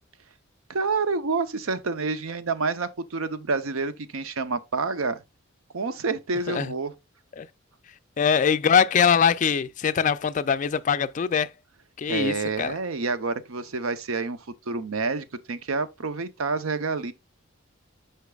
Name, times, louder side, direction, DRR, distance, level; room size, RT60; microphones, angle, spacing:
voice 1, 0.7-5.2 5.7-6.9 12.1-17.1, right 4 dB, 85° right, 0.7 m, -28 dB
voice 2, 8.2-11.5 12.0-12.7, left 7 dB, 35° left, 0.3 m, -22 dB
8.1 x 5.8 x 2.3 m
head